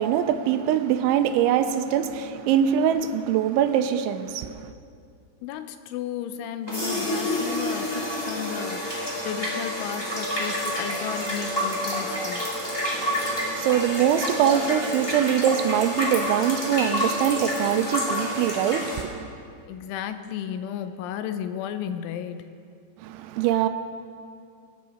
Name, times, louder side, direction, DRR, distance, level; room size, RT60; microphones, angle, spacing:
voice 1, 0.0-4.7 13.0-19.3 23.0-23.7, right 9 dB, 90° right, 3.1 m, -23 dB
voice 2, 5.4-12.5 19.7-22.5, left 9 dB, 90° left, 3.2 m, -34 dB
sound 1, 6.7-19.0, equal, 15° left, 1.0 m, -28 dB
25.0 x 10.5 x 4.3 m
omnidirectional pair, 5.4 m